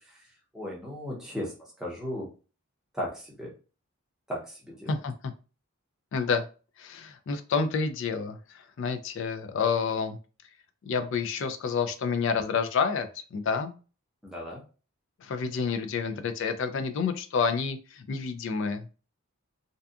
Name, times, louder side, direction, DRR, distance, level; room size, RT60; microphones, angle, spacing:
voice 1, 0.0-2.3 2.9-3.5 4.3-4.9 14.2-14.6, equal, 5° right, -3 dB, 0.7 m, -37 dB
voice 2, 6.1-6.4 6.8-10.2 10.9-13.7 15.2-18.9, left 5 dB, 55° left, 8 dB, 0.3 m, -29 dB
2.6 x 2.3 x 2.3 m, 0.35 s
head